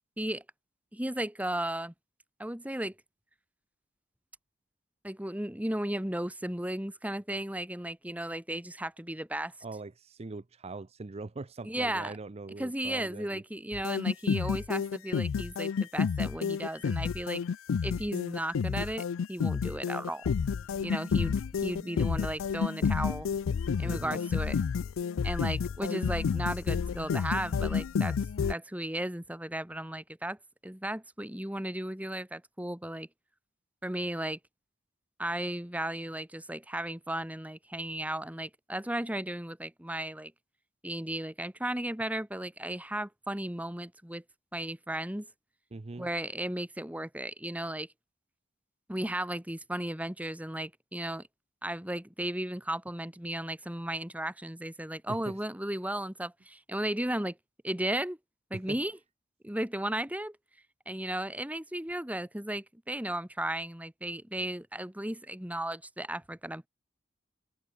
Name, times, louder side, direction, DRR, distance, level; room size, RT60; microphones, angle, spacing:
voice 1, 0.9-1.9 2.4-2.9 5.0-9.5 11.6-12.1 12.6-17.4 17.8-20.3 20.8-23.3 23.8-24.6 25.2-28.2 28.5-30.4 30.6-33.1 33.8-34.4 35.2-40.3 40.8-44.2 44.5-45.3 46.0-47.9 48.9-51.3 51.6-57.4 57.6-58.2 58.5-58.9 59.4-60.4 60.9-66.7, right 1 dB, 10° right, 1.7 m, -35 dB
voice 2, 9.6-13.4 23.8-24.2 45.7-46.1 55.1-55.4 58.5-58.8, right 3 dB, 30° right, 0.6 m, -41 dB
sound 1, 13.7-28.5, left 6 dB, 85° left, 0.4 m, -30 dB
head